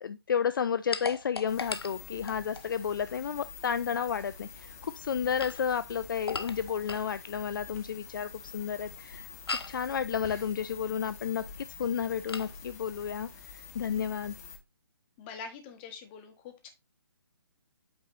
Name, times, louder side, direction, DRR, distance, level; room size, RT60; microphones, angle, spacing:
voice 1, 0.0-9.3 9.7-14.3, left 7 dB, 55° left, 0.4 m, -32 dB
sound 1, 0.9-2.7 5.2-7.1 9.5-9.8 12.3-12.5, left 4 dB, 80° left, 0.8 m, -38 dB
sound 2, 1.5-14.6, left 6 dB, 40° left, 1.7 m, -47 dB
voice 2, 15.2-16.7, left 5 dB, 25° left, 1.6 m, -44 dB
8.7 x 3.9 x 4.0 m
figure-of-eight pair, 145°, 13 cm